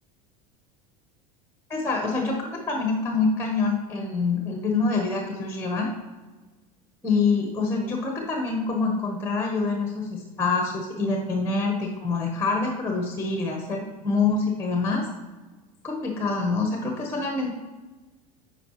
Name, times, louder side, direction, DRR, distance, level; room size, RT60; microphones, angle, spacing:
voice 1, 1.7-5.9 7.0-15.1 15.8-17.5, left 4 dB, 10° left, 1 dB, 1.2 m, -26 dB
8.6 x 4.9 x 3.1 m, 1.2 s
hypercardioid pair, 90°, 19 cm